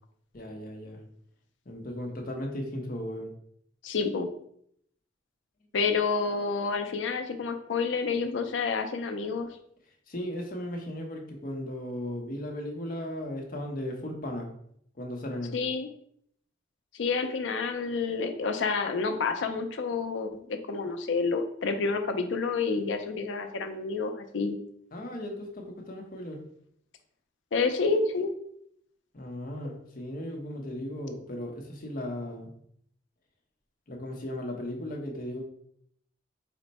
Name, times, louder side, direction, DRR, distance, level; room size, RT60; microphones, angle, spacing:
voice 1, 0.3-1.0 1.7-3.3 10.1-14.5 15.0-15.5 24.9-26.4 29.1-32.5 33.9-35.4, left 1 dB, 50° left, 1 dB, 0.8 m, -36 dB
voice 2, 3.8-4.3 5.7-9.6 15.5-15.9 16.9-24.6 27.5-28.3, left 4 dB, 85° left, 7 dB, 0.5 m, -29 dB
4.3 x 2.1 x 4.0 m, 0.67 s
head